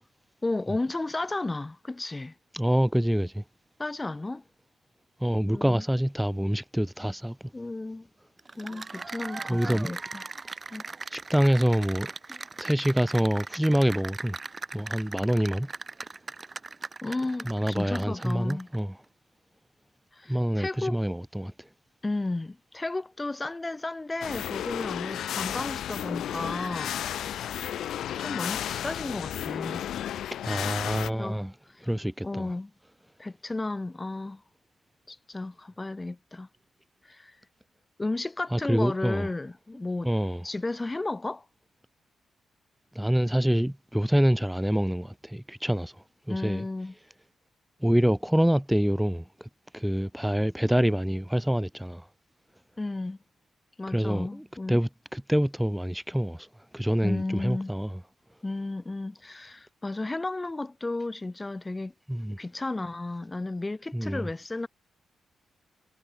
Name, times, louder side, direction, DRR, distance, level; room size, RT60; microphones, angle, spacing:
voice 1, 0.4-2.3 3.8-4.4 5.5-5.8 7.5-8.1 8.6-10.2 10.7-10.8 17.0-18.7 20.1-21.0 22.0-27.7 28.2-30.0 31.1-31.4 31.7-31.9 32.2-32.7 33.2-34.4 35.1-36.5 37.0-37.4 38.0-40.1 40.4-41.4 46.3-46.9 52.8-53.2 53.8-54.8 57.0-57.7 58.4-61.9 62.4-64.7, left 2 dB, 25° left, 4.5 m, -33 dB
voice 2, 2.5-3.4 5.2-7.4 9.5-9.9 11.1-14.4 14.7-15.7 17.4-19.0 20.3-21.5 30.4-31.5 31.8-32.5 38.5-39.3 40.0-40.4 42.9-45.9 46.3-46.7 47.8-52.0 53.9-56.5 56.7-58.0 62.1-62.4 63.9-64.3, equal, 5° right, 4.5 m, -26 dB
Cheering / Applause, 8.4-18.8, right 4 dB, 35° right, 5.8 m, -39 dB
sound 1, 24.2-31.1, left 11 dB, 80° left, 2.3 m, -33 dB
supercardioid pair, 55°, 0 cm